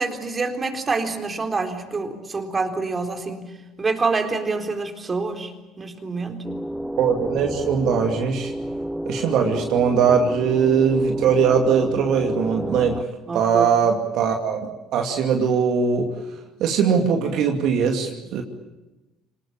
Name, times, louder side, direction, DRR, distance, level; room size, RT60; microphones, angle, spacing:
voice 1, 0.0-6.5 13.3-13.7, right 4 dB, 30° right, 5 dB, 3.9 m, -27 dB
sound 1, 6.4-13.0, right 1 dB, ahead, 1.2 m, -31 dB
voice 2, 7.0-8.5 9.1-13.0 13.3-14.6 14.9-16.1 16.6-18.4, right 6 dB, 65° right, 3 dB, 2.5 m, -20 dB
26.0 x 20.0 x 8.9 m, 1.0 s
hypercardioid pair, 65°, 0 cm